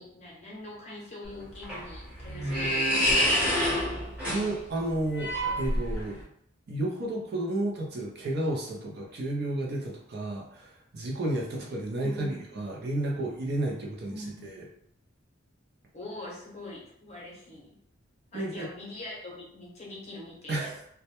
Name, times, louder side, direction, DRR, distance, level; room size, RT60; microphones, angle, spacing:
voice 1, 0.0-4.1 11.9-12.4 14.1-14.5 15.9-17.7 18.3-20.7, left 2 dB, 35° left, -4 dB, 0.7 m, -43 dB
sound 1, 1.2-6.2, equal, 5° right, 0.8 m, -28 dB
voice 2, 4.2-6.2 6.7-14.6 18.3-18.7 20.5-20.8, right 1 dB, 55° right, -1 dB, 0.5 m, -32 dB
2.1 x 2.1 x 2.9 m, 0.71 s
head